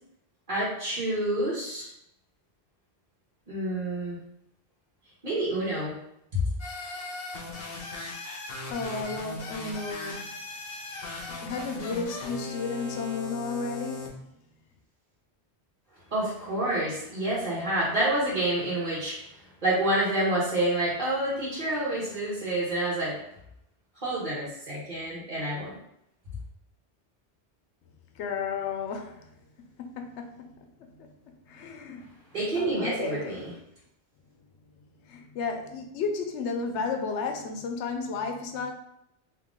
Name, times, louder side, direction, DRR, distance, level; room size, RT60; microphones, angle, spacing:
voice 1, 0.5-1.9 3.5-4.2 5.2-6.0 16.1-19.2 19.6-23.2 24.0-25.7 32.3-33.5, right 1 dB, 45° right, -8 dB, 1.3 m, -28 dB
sound 1, 6.6-14.1, left 3 dB, 60° left, 1.1 m, -38 dB
voice 2, 8.7-10.4 11.3-14.2 28.1-29.3 29.6-32.1 32.5-33.3 34.8-38.7, left 4 dB, 85° left, 4 dB, 0.9 m, -33 dB
3.7 x 2.8 x 3.6 m, 0.78 s
omnidirectional pair, 1.1 m